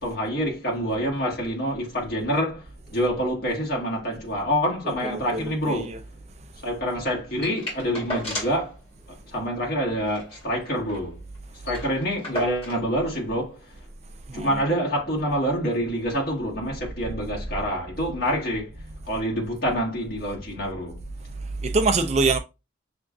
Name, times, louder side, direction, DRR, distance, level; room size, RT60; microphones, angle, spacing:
voice 1, 0.0-5.9 6.6-8.7 9.3-11.2 11.6-13.6 14.3-18.7 19.1-21.0, equal, 50° left, 1.7 m, -26 dB
voice 2, 5.1-6.0 14.3-14.6 21.6-22.4, right 3 dB, 35° right, 0.4 m, -24 dB
sound 1, 7.4-8.7 9.0-9.1 9.4-9.6 10.0-11.1 11.3-11.4 11.6-12.9 13.8-13.9, left 1 dB, 30° left, 2.3 m, -35 dB
6.3 x 2.5 x 2.3 m
head